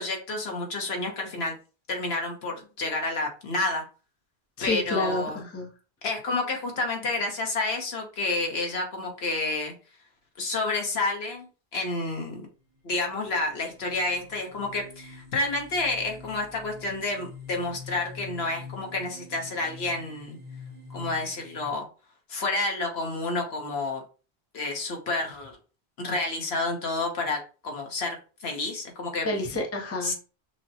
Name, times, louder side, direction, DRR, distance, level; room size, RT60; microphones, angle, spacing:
voice 1, 0.0-1.6 1.9-3.8 4.6-5.4 6.0-9.7 10.4-11.5 11.7-12.5 12.8-20.4 20.9-21.9 22.3-24.0 24.5-25.6 26.0-29.3 30.0-30.1, left 2 dB, 70° left, 2 dB, 1.2 m, -29 dB
voice 2, 4.6-5.7 29.2-30.1, left 2 dB, 15° left, 0 dB, 0.6 m, -29 dB
sound 1, 12.8-12.9 13.2-21.7, left 4 dB, 40° right, 0.9 m, -46 dB
6.2 x 2.1 x 2.8 m, 0.35 s
omnidirectional pair, 1.1 m